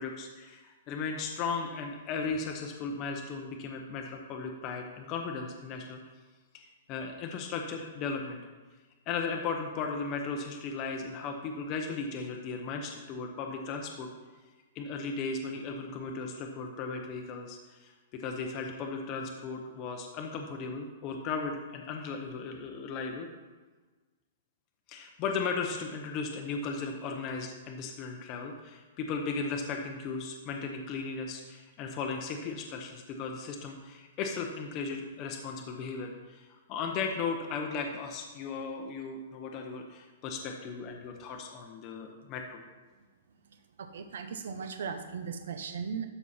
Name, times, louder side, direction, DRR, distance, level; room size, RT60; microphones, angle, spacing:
voice 1, 0.0-6.0 6.5-8.4 9.1-14.1 14.7-23.3 24.9-42.6, left 4 dB, 25° left, 2 dB, 0.7 m, -36 dB
voice 2, 43.9-46.1, right 6 dB, 70° right, 7 dB, 0.8 m, -37 dB
12.5 x 5.6 x 4.2 m, 1.3 s
hypercardioid pair, 175°, 0 cm